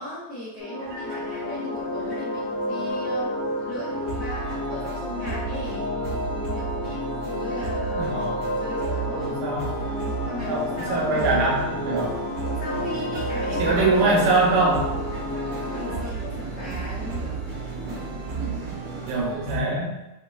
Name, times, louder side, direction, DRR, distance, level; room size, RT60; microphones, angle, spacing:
voice 1, 0.0-3.3 3.7-8.1 8.6-11.4 12.4-14.1 15.6-17.4, left 1 dB, 85° left, -11 dB, 1.0 m, -37 dB
sound 1, 0.6-16.0, left 1 dB, 65° left, 1.7 m, -30 dB
sound 2, 0.8-19.1, right 2 dB, 65° right, 2.4 m, -41 dB
sound 3, 3.9-19.6, right 6 dB, 50° right, 1.3 m, -34 dB
voice 2, 8.0-8.5 9.1-9.8 10.5-12.2 13.6-15.0 19.1-19.9, right 2 dB, 90° right, -3 dB, 2.6 m, -23 dB
5.7 x 2.3 x 2.3 m, 0.98 s
omnidirectional pair, 4.1 m